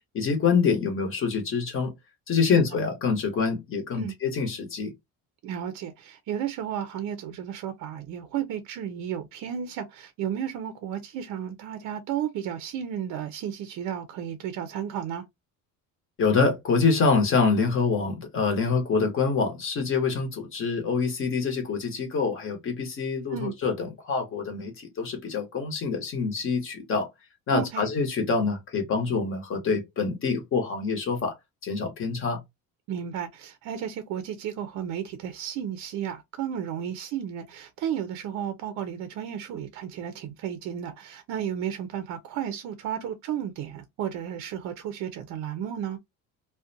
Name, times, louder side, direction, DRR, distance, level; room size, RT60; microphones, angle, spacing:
voice 1, 0.1-1.9 2.3-4.9 16.2-27.1 27.5-31.3 31.6-32.4, left 5 dB, 35° left, 0.8 m, -26 dB
voice 2, 5.4-15.2 23.3-23.5 27.5-27.9 32.9-46.0, right 9 dB, 55° right, 0.4 m, -33 dB
2.5 x 2.1 x 2.5 m
cardioid pair, 170°, 35 cm